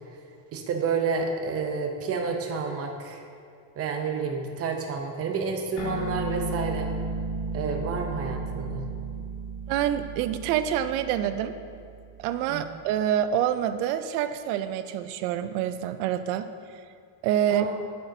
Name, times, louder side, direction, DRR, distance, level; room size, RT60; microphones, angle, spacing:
voice 1, 0.5-3.2 3.8-6.9 7.5-8.9 12.5-12.6 17.5-17.8, right 5 dB, 30° right, 3 dB, 0.7 m, -30 dB
sound 1, 5.8-12.6, right 3 dB, 65° left, 1.3 m, -34 dB
voice 2, 9.7-11.6 12.2-16.5 17.2-17.7, right 10 dB, 85° right, 11 dB, 0.6 m, -26 dB
8.4 x 6.5 x 2.7 m, 2.3 s
cardioid pair, 145°, 46 cm